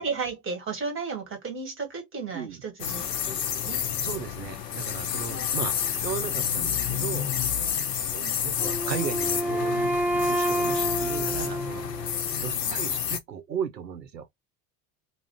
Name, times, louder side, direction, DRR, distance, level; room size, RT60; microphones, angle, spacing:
voice 1, 0.0-3.8 8.2-8.4 12.5-12.7, right 4 dB, 25° right, 1.3 m, -34 dB
sound 1, 2.8-13.2, left 8 dB, 80° left, 0.6 m, -29 dB
voice 2, 4.0-7.4 8.1-11.8 12.4-14.3, right 8 dB, 85° right, 0.6 m, -36 dB
Wind instrument woodwind instrument, 8.6-12.5, right 1 dB, 5° right, 0.5 m, -28 dB
2.4 x 2.0 x 3.2 m
figure-of-eight pair, 65°, 48 cm